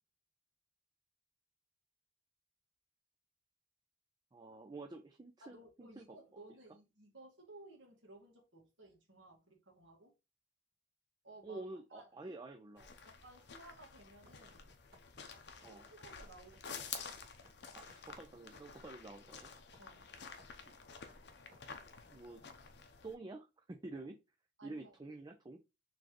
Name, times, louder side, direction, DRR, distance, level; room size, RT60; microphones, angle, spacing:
voice 1, 4.3-6.2 11.4-12.9 15.6-15.8 17.7-19.5 20.7-20.8 22.1-22.4 23.0-24.2 24.6-25.6, right 2 dB, 20° right, 0.4 m, -49 dB
voice 2, 5.4-10.1 11.2-12.1 13.0-14.7 15.7-17.0 19.8-20.1 24.6-25.0, right 2 dB, 85° right, 1.8 m, -58 dB
sound 1, 12.8-23.1, left 6 dB, 65° left, 0.7 m, -51 dB
sound 2, 14.2-22.0, left 1 dB, 55° right, 1.9 m, -64 dB
4.2 x 3.3 x 3.0 m
head